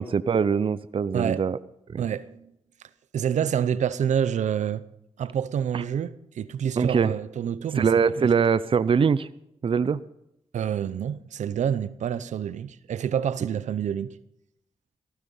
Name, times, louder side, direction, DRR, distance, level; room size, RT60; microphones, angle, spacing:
voice 1, 0.0-1.6 1.9-2.0 5.7-5.8 6.8-7.1 7.7-9.3 9.6-10.0, right 6 dB, 45° right, 0.6 m, -22 dB
voice 2, 1.1-1.4 2.0-2.5 3.1-4.8 5.2-7.9 10.5-14.1, right 8 dB, 80° right, 0.8 m, -27 dB
15.5 x 15.0 x 5.5 m
cardioid pair, 70°, 12 cm